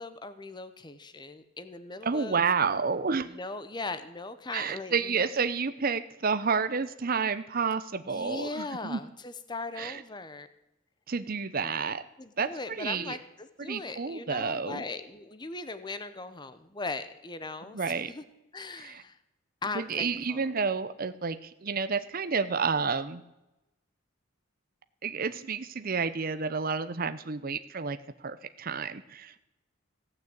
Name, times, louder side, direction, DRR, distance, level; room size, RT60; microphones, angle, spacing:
voice 1, 0.0-2.7 3.3-5.3 8.0-10.5 12.2-18.2 18.5-19.2 19.6-20.5, left 3 dB, 20° left, 11 dB, 0.8 m, -39 dB
voice 2, 2.0-3.3 4.5-9.0 9.8-10.0 11.1-12.0 12.4-12.5 12.8-13.2 13.6-14.8 17.7-18.1 18.8-19.0 19.7-23.2 25.0-28.0 28.2-29.4, right 5 dB, 45° right, 11 dB, 0.7 m, -30 dB
17.0 x 6.6 x 8.7 m, 0.93 s
head